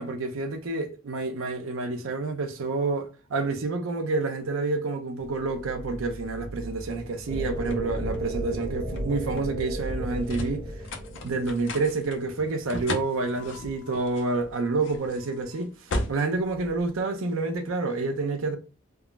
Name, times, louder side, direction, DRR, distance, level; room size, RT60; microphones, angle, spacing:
voice 1, 0.0-10.7 11.2-15.7 16.1-18.6, right 3 dB, 80° right, 0.5 m, -28 dB
sound 1, 5.2-17.6, left 2 dB, 60° left, 0.4 m, -38 dB
sound 2, 7.3-12.4, equal, 20° right, 0.8 m, -34 dB
3.5 x 2.0 x 2.3 m
head